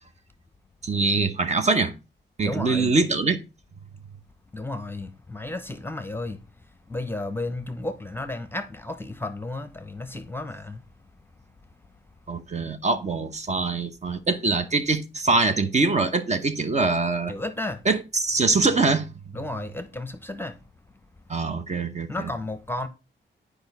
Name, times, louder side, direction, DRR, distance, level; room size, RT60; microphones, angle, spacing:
voice 1, 0.8-1.9 2.4-3.4 12.3-17.3 17.8-19.1 21.3-22.3, right 3 dB, 35° right, 0.9 m, -23 dB
voice 2, 2.4-2.9 4.5-6.4 6.9-10.9 17.3-17.8 19.3-20.6 22.1-22.9, left 2 dB, 10° left, 0.8 m, -33 dB
8.7 x 5.0 x 4.1 m
cardioid pair, 100°, 19 cm